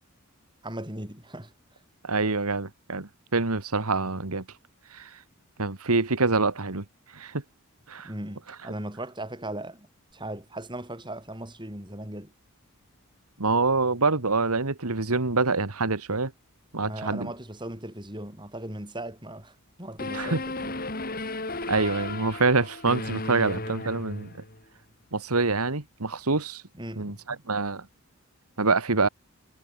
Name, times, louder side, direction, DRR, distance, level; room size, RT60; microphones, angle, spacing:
voice 1, 0.6-1.5 8.0-9.9 10.1-12.3 16.8-19.5 19.8-20.7 21.6-21.7 26.7-27.2, right 1 dB, 20° right, 5.8 m, -38 dB
voice 2, 2.0-4.4 4.9-5.1 5.6-6.8 7.1-7.4 7.9-8.1 13.4-16.3 16.7-17.3 20.1-20.4 21.7-24.3 25.1-26.6 27.0-27.8 28.6-29.1, right 3 dB, 80° right, 1.8 m, -26 dB
sound 1, 20.0-24.6, left 2 dB, 40° left, 4.1 m, -34 dB
head